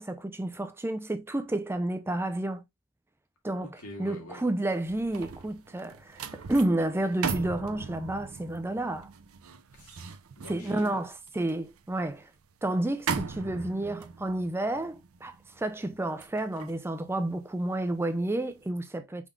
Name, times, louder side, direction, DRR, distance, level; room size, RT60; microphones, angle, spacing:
voice 1, 0.0-2.6 3.4-3.7 4.0-9.1 10.5-12.3 12.6-19.3, right 1 dB, 10° right, 0.4 m, -30 dB
voice 2, 3.6-4.4 9.7-11.0, left 1 dB, 80° left, 2.1 m, -45 dB
sound 1, 4.7-18.0 18.4-18.6, right 6 dB, 65° right, 0.5 m, -39 dB
5.4 x 3.5 x 2.3 m
head